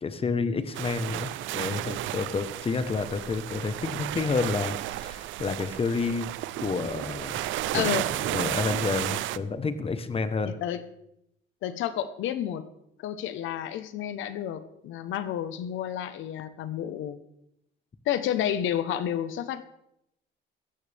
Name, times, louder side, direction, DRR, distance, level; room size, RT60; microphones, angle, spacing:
voice 1, 0.0-6.3 6.6-7.4 7.7-8.0 8.3-10.5, left 4 dB, 30° left, 10 dB, 1.2 m, -29 dB
sound 1, 0.7-9.4, right 15 dB, 85° right, 0.5 m, -33 dB
voice 2, 7.7-8.1 10.4-10.8 11.6-12.6 13.0-17.2 18.0-19.6, left 10 dB, 80° left, 12 dB, 1.1 m, -30 dB
17.0 x 13.5 x 3.6 m, 0.81 s
cardioid pair, 125°, 20 cm